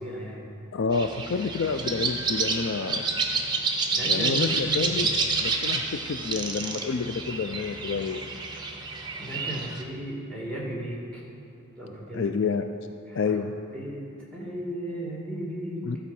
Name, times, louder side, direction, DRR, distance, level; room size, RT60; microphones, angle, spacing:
voice 1, 0.0-0.5 3.9-5.1 9.2-11.2 11.8-12.4 13.1-15.9, equal, 5° left, -4 dB, 2.1 m, -35 dB
voice 2, 0.7-3.1 4.0-5.1 5.4-8.3 12.1-12.7 13.1-13.5 15.8-16.0, left 5 dB, 60° left, 7 dB, 0.4 m, -29 dB
sound 1, 0.9-9.8, right 3 dB, 20° right, 0.8 m, -29 dB
12.5 x 5.0 x 7.0 m, 2.7 s
head